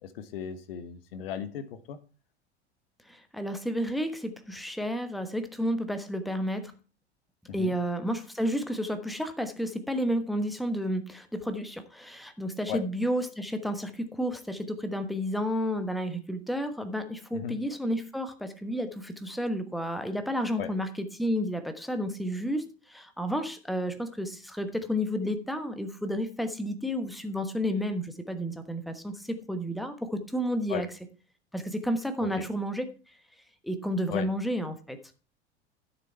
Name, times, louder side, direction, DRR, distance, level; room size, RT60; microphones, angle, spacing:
voice 1, 0.0-2.0 7.5-7.7 12.7-12.8 17.3-17.6 20.6-20.7 30.7-30.8 32.2-32.4 34.1-34.3, left 9 dB, 55° left, 11 dB, 1.3 m, -36 dB
voice 2, 3.1-6.7 7.5-30.9 31.5-32.9 33.6-35.0, equal, ahead, 8 dB, 1.2 m, -31 dB
13.0 x 7.2 x 4.5 m, 0.35 s
figure-of-eight pair, 80°, 33 cm